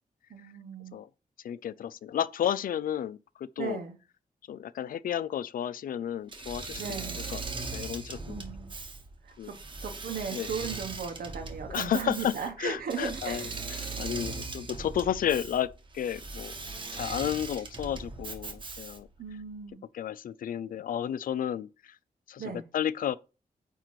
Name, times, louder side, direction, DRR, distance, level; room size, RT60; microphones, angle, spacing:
voice 1, 0.3-1.0 3.6-4.0 6.8-7.3 8.3-8.7 9.2-9.6 9.8-13.5 19.2-19.8 22.4-22.6, right 6 dB, 90° right, 1.4 m, -37 dB
voice 2, 1.4-3.8 4.5-6.8 7.3-7.4 7.7-8.4 9.4-9.5 10.3-10.5 11.7-12.3 12.6-13.5 14.0-16.5 16.9-19.1 19.9-22.0 22.3-22.4 22.7-23.2, left 10 dB, 75° left, 0.4 m, -32 dB
Engine / Mechanisms, 6.3-19.2, right 3 dB, 35° right, 1.0 m, -39 dB
9.0 x 3.0 x 4.5 m
wide cardioid pair, 175°, 15 cm